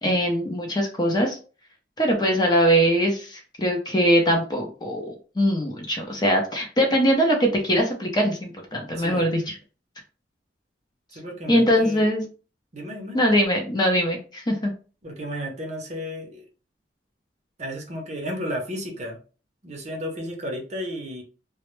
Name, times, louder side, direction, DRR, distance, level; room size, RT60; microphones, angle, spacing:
voice 1, 0.0-1.4 2.0-9.5 11.5-12.3 13.1-14.7, equal, 25° left, 1 dB, 0.5 m, -22 dB
voice 2, 8.9-9.3 11.1-12.1 12.7-13.2 15.0-16.5 17.6-19.2 19.6-21.2, equal, 40° right, 2 dB, 0.6 m, -33 dB
2.1 x 2.1 x 3.0 m, 0.36 s
head